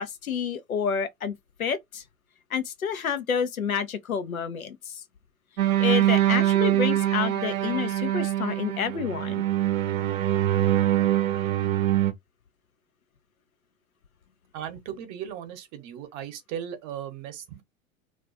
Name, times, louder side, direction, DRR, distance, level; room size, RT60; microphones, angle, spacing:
voice 1, 0.0-2.0 2.5-5.0 5.8-9.4, left 7 dB, 85° left, 0.6 m, -29 dB
sound 1, 5.6-12.1, right 13 dB, 70° right, 0.6 m, -24 dB
voice 2, 14.5-17.6, right 9 dB, 40° right, 0.8 m, -37 dB
2.3 x 2.2 x 2.4 m
figure-of-eight pair, 95°, 41 cm